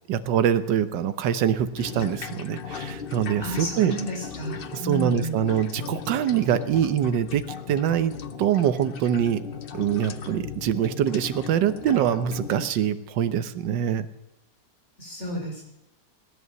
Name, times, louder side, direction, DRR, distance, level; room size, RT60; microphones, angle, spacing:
voice 1, 0.1-3.9 4.8-8.1 8.4-9.4 9.7-14.1, right 9 dB, 80° right, 11 dB, 1.5 m, -24 dB
sound 1, 1.8-12.7, left 6 dB, 65° left, 0.5 m, -37 dB
voice 2, 3.4-5.5 15.0-15.6, equal, 35° left, 0 dB, 5.3 m, -32 dB
18.0 x 11.0 x 6.9 m, 0.88 s
omnidirectional pair, 1.9 m